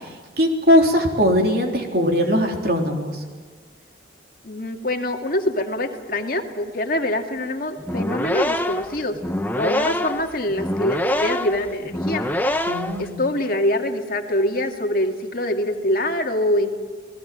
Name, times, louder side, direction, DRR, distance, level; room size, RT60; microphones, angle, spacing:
voice 1, 0.4-3.1 12.7-13.2, equal, 55° right, 2 dB, 3.7 m, -19 dB
voice 2, 4.4-9.2 9.5-12.3 13.0-16.8, left 1 dB, 50° left, 3 dB, 2.3 m, -24 dB
sound 1, 7.8-13.1, left 1 dB, 10° left, 1.0 m, -25 dB
29.5 x 19.0 x 7.6 m, 1.5 s
head